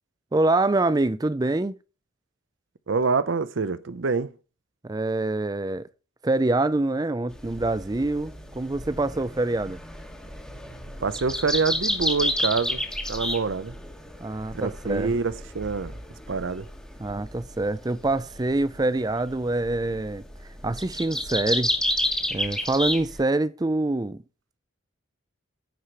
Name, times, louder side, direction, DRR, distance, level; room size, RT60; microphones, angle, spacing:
voice 1, 0.3-1.8 4.8-5.9 6.2-9.8 14.2-15.1 17.0-20.2 20.6-21.7 22.3-24.2, right 2 dB, 20° right, 0.4 m, -25 dB
voice 2, 2.9-4.3 11.0-13.8 14.5-16.0 16.3-16.7, right 4 dB, 65° right, 0.6 m, -26 dB
sound 1, 7.3-23.2, left 1 dB, 5° left, 1.3 m, -31 dB
10.5 x 5.0 x 5.6 m
head